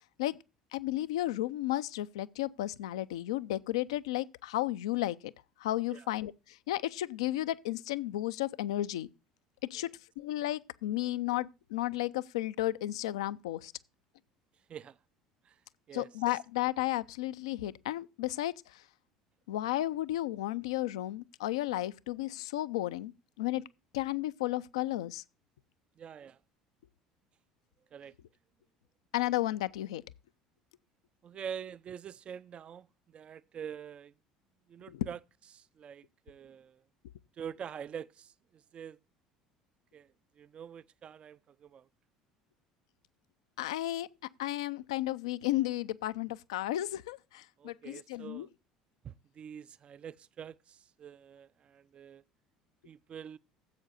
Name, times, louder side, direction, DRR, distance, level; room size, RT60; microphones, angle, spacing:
voice 1, 0.7-5.3 5.6-9.1 9.7-9.9 10.2-13.7 15.9-18.8 19.5-23.1 23.4-23.6 23.9-25.2 29.1-30.0 34.9-35.1 43.6-44.1 44.4-48.5, left 15 dB, 70° left, 0.4 m, -33 dB
voice 2, 15.9-16.4 26.0-26.4 27.9-28.1 31.2-34.1 34.7-35.2 35.5-36.8 37.3-39.0 39.9-41.9 47.6-48.5 49.0-52.2 52.8-53.4, right 8 dB, 35° right, 0.4 m, -46 dB
15.5 x 7.9 x 2.6 m
figure-of-eight pair, 65°, 3 cm